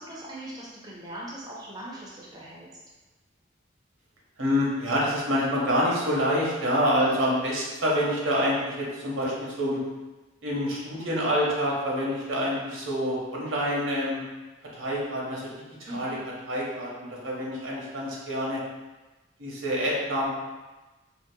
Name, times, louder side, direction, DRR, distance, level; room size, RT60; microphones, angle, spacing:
voice 1, 0.0-2.7 15.9-16.1, right 1 dB, 20° right, -5 dB, 0.4 m, -40 dB
voice 2, 4.4-9.8 10.4-14.2 14.7-15.5 15.8-16.2 16.5-18.6 19.4-20.3, equal, 90° right, -4 dB, 0.8 m, -27 dB
3.7 x 2.0 x 2.6 m, 1.2 s
head